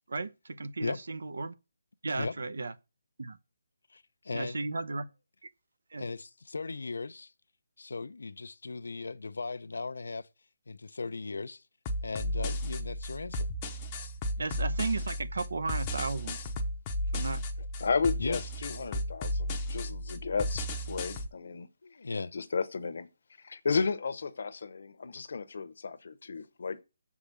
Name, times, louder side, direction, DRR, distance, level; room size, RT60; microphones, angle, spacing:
voice 1, 0.1-1.5 2.0-2.7 3.2-3.4 4.3-5.1 5.9-6.0 14.4-16.4 17.1-17.4, right 3 dB, 70° right, 0.8 m, -34 dB
voice 2, 3.9-4.7 6.0-7.3 7.8-10.3 10.7-11.6 12.0-13.5 18.2-18.4 21.8-22.3, left 3 dB, 75° left, 0.6 m, -37 dB
sound 1, 11.9-21.3, left 1 dB, 15° left, 0.7 m, -34 dB
voice 3, 17.8-21.7 22.3-23.1 23.4-26.8, left 5 dB, 50° left, 0.9 m, -33 dB
7.0 x 4.9 x 6.7 m
hypercardioid pair, 175°, 0 cm